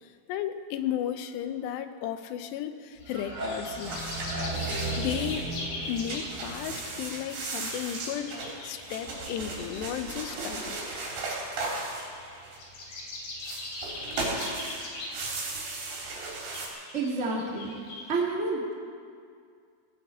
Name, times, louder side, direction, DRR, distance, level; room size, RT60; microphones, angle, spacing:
voice 1, 0.0-4.1 5.0-5.5 5.9-10.8, left 10 dB, 85° left, 9 dB, 2.9 m, -34 dB
sound 1, 3.0-18.1, left 2 dB, 60° left, 4.4 m, -42 dB
sound 2, 3.0-7.9, right 2 dB, 20° right, 3.7 m, -36 dB
sound 3, 3.8-5.5 5.8-12.8 13.4-16.7, right 3 dB, 80° right, 5.6 m, -36 dB
voice 2, 16.9-17.7 18.1-18.7, right 3 dB, 50° right, -3 dB, 0.8 m, -29 dB
18.5 x 18.0 x 4.3 m, 2.2 s
omnidirectional pair, 4.9 m